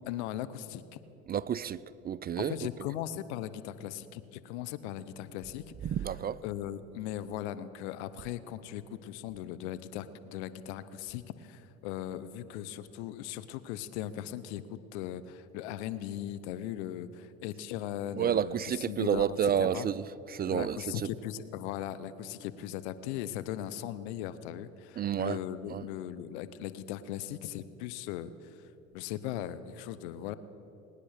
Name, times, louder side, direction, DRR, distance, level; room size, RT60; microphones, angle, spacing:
voice 1, 0.1-1.0 2.4-5.7 6.4-19.9 20.5-30.4, left 11 dB, 80° left, 0.8 m, -38 dB
voice 2, 1.3-2.7 5.8-6.4 18.2-21.0 25.0-25.4 25.7-25.8, right 9 dB, 30° right, 0.4 m, -30 dB
20.0 x 9.9 x 6.5 m
hypercardioid pair, 75°, 33 cm